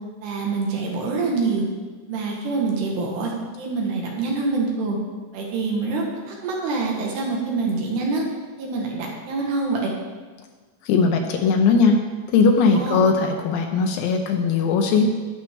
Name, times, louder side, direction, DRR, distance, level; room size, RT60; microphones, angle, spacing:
voice 1, 0.2-1.7 2.1-5.0 5.3-8.2 8.6-9.9 12.7-13.0, right 3 dB, 70° right, -1 dB, 3.3 m, -25 dB
voice 2, 10.9-12.0 12.3-15.0, left 4 dB, 85° left, 3 dB, 3.0 m, -19 dB
11.5 x 9.5 x 3.5 m, 1.4 s
omnidirectional pair, 5.1 m